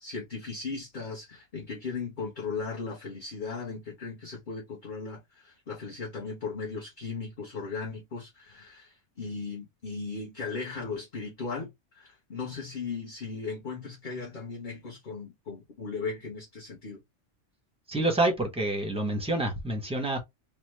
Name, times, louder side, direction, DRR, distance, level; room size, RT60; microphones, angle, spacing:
voice 1, 0.0-17.0, left 4 dB, 45° left, 0.9 m, -37 dB
voice 2, 17.9-20.2, right 1 dB, 5° right, 0.6 m, -27 dB
3.1 x 2.1 x 3.1 m
omnidirectional pair, 1.2 m